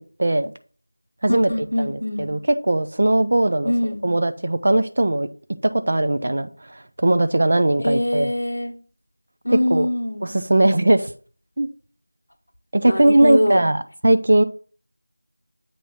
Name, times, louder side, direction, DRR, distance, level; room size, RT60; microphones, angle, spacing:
voice 1, 0.2-0.5 1.2-3.7 4.0-5.3 5.6-8.3 9.5-9.9 10.2-11.1 11.6-11.7 12.7-14.4, right 1 dB, 40° right, 10 dB, 0.4 m, -19 dB
voice 2, 1.3-2.3 3.6-4.0 7.8-8.7 9.4-10.3 12.8-13.7, left 1 dB, 85° left, 2 dB, 1.1 m, -23 dB
8.2 x 3.1 x 5.8 m, 0.41 s
figure-of-eight pair, 180°, 0 cm